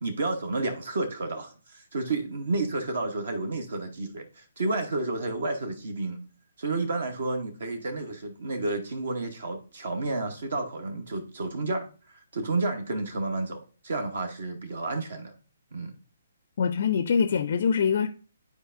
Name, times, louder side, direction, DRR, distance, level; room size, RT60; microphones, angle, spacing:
voice 1, 0.0-6.2 6.6-15.3 15.7-16.0, right 2 dB, 55° right, 0.9 m, -31 dB
voice 2, 16.6-18.1, left 6 dB, 45° left, 0.4 m, -24 dB
10.0 x 4.6 x 2.5 m
figure-of-eight pair, 130°, 0 cm